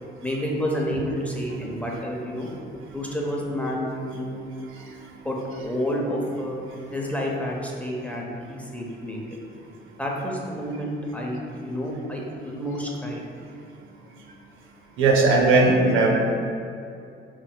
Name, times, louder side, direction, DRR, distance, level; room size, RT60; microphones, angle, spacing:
voice 1, 0.2-2.5 2.9-4.4 5.2-6.6 6.9-9.2 10.0-13.2 15.6-15.7, equal, 5° left, -3 dB, 0.6 m, -29 dB
voice 2, 15.0-16.1, right 3 dB, 90° right, 1 dB, 0.6 m, -18 dB
4.7 x 3.7 x 2.3 m, 2.5 s
cardioid pair, 90°, 20 cm